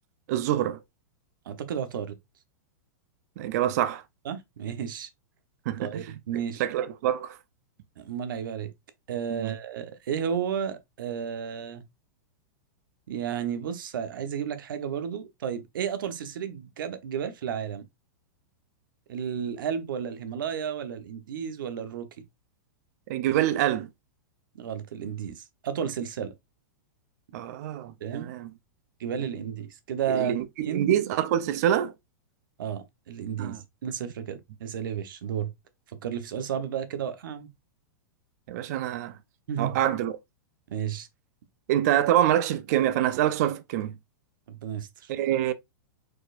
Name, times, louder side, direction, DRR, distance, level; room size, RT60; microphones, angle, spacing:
voice 1, 0.3-0.8 3.4-4.0 5.7-6.2 6.6-7.4 9.3-9.5 23.1-23.9 27.3-28.5 30.1-31.9 33.4-33.6 38.5-39.2 39.6-40.1 41.7-44.0 45.1-45.5, right 11 dB, 50° right, 0.6 m, -26 dB
voice 2, 1.5-2.2 4.2-5.1 5.8-6.6 8.0-8.7 9.1-11.8 13.1-17.8 19.1-22.1 24.5-26.3 28.0-28.3 29.0-30.4 30.6-31.0 32.6-35.5 36.0-37.5 39.5-39.7 40.7-41.1 44.5-45.1, right 8 dB, 80° right, 1.0 m, -32 dB
4.8 x 4.3 x 2.5 m
supercardioid pair, 150°, 11 cm